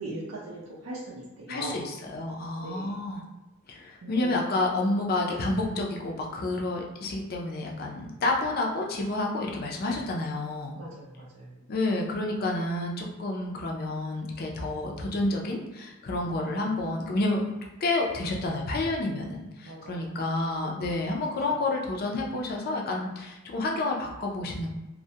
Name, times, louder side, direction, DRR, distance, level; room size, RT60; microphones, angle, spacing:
voice 1, 0.0-1.8 2.6-2.9 4.0-4.4 5.3-5.4 10.8-11.6 19.7-20.0 20.4-20.8, right 2 dB, 75° right, -6 dB, 0.5 m, -40 dB
voice 2, 1.5-3.2 3.7-10.7 11.7-17.4 17.8-24.7, left 2 dB, 45° left, 0 dB, 0.4 m, -29 dB
2.2 x 2.0 x 2.7 m, 1.1 s
head